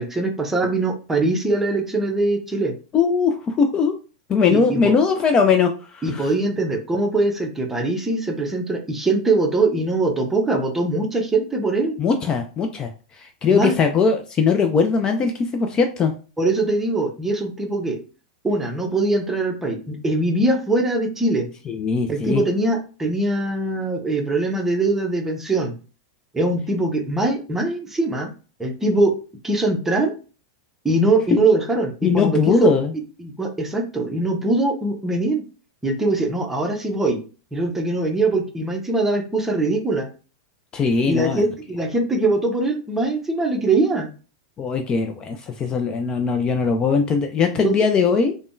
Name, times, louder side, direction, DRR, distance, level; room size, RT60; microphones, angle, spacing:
voice 1, 0.0-2.7 4.5-4.9 6.0-11.9 13.5-13.7 16.4-18.0 18.4-21.5 22.1-25.7 26.3-28.3 28.6-29.1 29.4-30.1 30.8-32.7 33.2-35.4 35.8-37.2 37.5-40.1 41.1-44.1 47.6-47.7, right 2 dB, 10° right, 2 dB, 0.7 m, -22 dB
voice 2, 2.9-3.9 4.3-6.3 12.0-16.1 21.7-22.4 32.0-32.9 40.7-41.4 44.6-48.4, left 5 dB, 25° left, 6 dB, 0.4 m, -20 dB
3.5 x 2.1 x 2.5 m, 0.36 s
hypercardioid pair, 100°, 3 cm